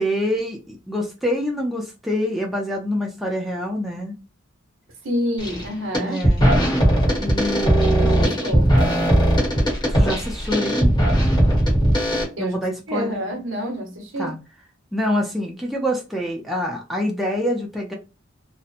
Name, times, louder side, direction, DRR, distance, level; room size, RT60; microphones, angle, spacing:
voice 1, 0.0-4.1 6.0-6.5 7.2-8.4 9.9-10.9 12.4-13.2 14.2-14.4 14.9-17.9, equal, ahead, 0.4 m, -26 dB
voice 2, 5.0-6.2 7.8-8.7 12.4-12.6 12.9-14.3, equal, 65° right, 1.0 m, -28 dB
sound 1, 5.4-5.6 5.9-12.2, equal, 20° left, 1.0 m, -18 dB
2.7 x 2.1 x 2.4 m
head